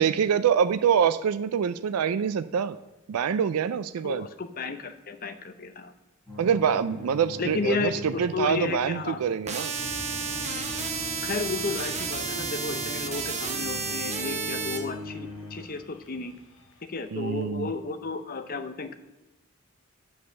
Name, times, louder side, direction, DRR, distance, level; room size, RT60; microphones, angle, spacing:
voice 1, 0.0-2.8 3.1-4.3 6.4-9.7 17.1-17.7, right 7 dB, 90° right, 13 dB, 0.4 m, -25 dB
voice 2, 4.0-5.9 7.4-9.2 11.2-16.3 16.9-18.9, left 4 dB, 45° left, 9 dB, 0.7 m, -33 dB
sound 1, 6.3-15.6, left 2 dB, 10° left, 3.7 m, -42 dB
sound 2, 9.5-14.8, right 5 dB, 30° right, 1.0 m, -32 dB
sound 3, 9.7-17.4, left 1 dB, 60° left, 1.1 m, -47 dB
9.6 x 5.3 x 6.8 m, 1.0 s
head